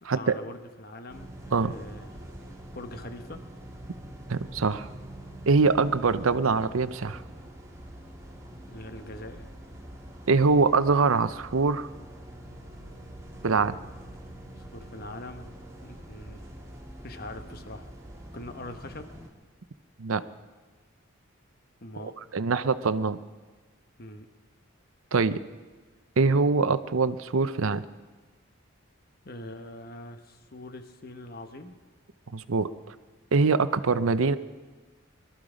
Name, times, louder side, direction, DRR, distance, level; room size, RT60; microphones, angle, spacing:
voice 1, 0.0-3.4 8.6-9.5 14.6-16.5 17.0-17.9 18.3-19.1 21.8-22.1 24.0-24.3 29.2-31.8, left 1 dB, 45° left, 8 dB, 1.1 m, -43 dB
sound 1, 1.1-19.3, right 1 dB, 15° right, 1.7 m, -45 dB
voice 2, 4.3-4.9 5.5-7.2 10.3-11.9 13.4-13.7 20.0-20.2 22.0-23.2 25.1-25.4 26.2-27.8 32.3-32.7 33.3-34.4, right 4 dB, 75° right, 13 dB, 0.7 m, -23 dB
22.0 x 13.0 x 5.1 m, 1.3 s
head